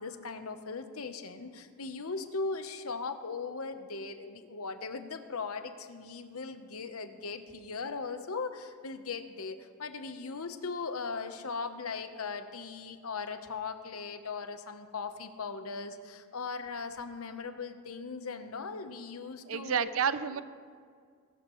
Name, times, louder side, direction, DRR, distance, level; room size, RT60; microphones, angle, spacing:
voice 1, 0.0-19.9, left 4 dB, 85° left, 9 dB, 1.0 m, -39 dB
voice 2, 19.5-20.4, right 7 dB, 70° right, 14 dB, 0.5 m, -30 dB
21.5 x 12.5 x 3.1 m, 2.1 s
head